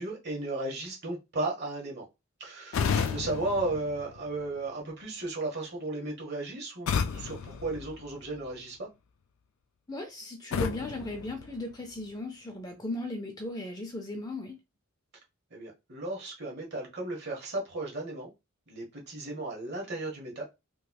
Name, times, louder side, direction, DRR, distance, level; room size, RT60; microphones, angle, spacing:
voice 1, 0.0-2.0 2.4-8.9 15.5-18.3 18.7-20.4, right 2 dB, 50° right, 1.3 m, -35 dB
sound 1, 2.7-4.7 6.9-8.6 10.5-12.1, left 6 dB, 65° left, 0.3 m, -33 dB
voice 2, 9.9-14.6, left 1 dB, 20° left, 0.6 m, -37 dB
3.2 x 3.0 x 2.3 m
head